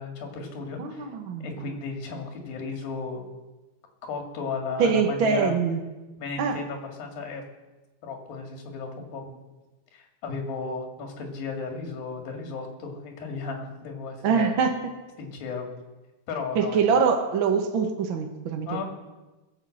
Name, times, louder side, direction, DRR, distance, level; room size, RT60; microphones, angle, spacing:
voice 1, 0.0-1.1 1.4-3.3 4.0-5.5 6.2-7.4 8.0-9.4 9.9-14.6 15.2-15.7 16.3-16.8 18.7-18.8, left 4 dB, 75° left, 2 dB, 4.0 m, -34 dB
voice 2, 0.8-1.6 4.8-5.8 6.4-6.6 14.2-14.8 16.5-18.8, right 6 dB, 65° right, 4 dB, 1.2 m, -24 dB
21.0 x 7.4 x 7.8 m, 1.1 s
omnidirectional pair, 4.2 m